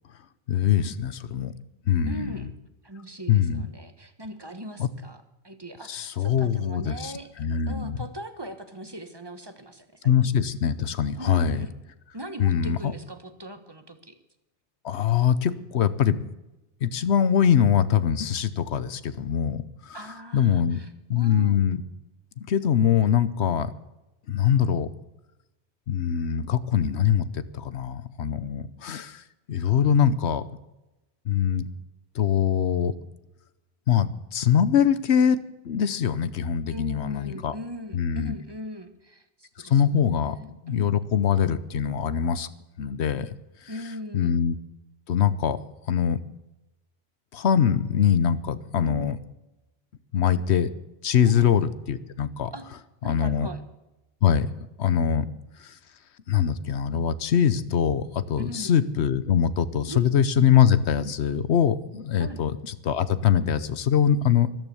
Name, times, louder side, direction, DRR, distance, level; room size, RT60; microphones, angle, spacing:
voice 1, 0.5-1.5 1.9-2.5 3.3-3.7 4.8-4.9 5.9-8.0 10.0-11.7 12.4-12.9 14.8-16.2 16.8-20.0 20.3-20.8 21.1-21.8 22.4-23.7 24.3-24.9 25.9-30.4 31.2-31.7 32.1-32.9 33.9-35.4 35.6-37.5 37.9-38.3 39.6-42.5 42.8-43.3 43.6-43.7 44.1-44.5 45.1-45.6 45.9-46.2 47.3-49.2 50.1-50.7 51.0-52.5 53.0-53.5 54.2-54.5 54.8-55.3 55.6-55.8 56.3-64.5, left 8 dB, 80° left, 15 dB, 1.1 m, -23 dB
voice 2, 2.1-2.5 2.8-7.3 7.7-10.1 11.1-11.7 12.1-14.1 19.9-21.6 36.7-40.9 43.7-44.3 48.8-49.1 51.2-51.5 52.5-52.6 53.0-53.6 58.4-58.7 59.9-60.1 62.2-62.4, equal, 25° right, 8 dB, 1.3 m, -39 dB
13.5 x 12.5 x 7.0 m, 0.96 s
omnidirectional pair, 1.1 m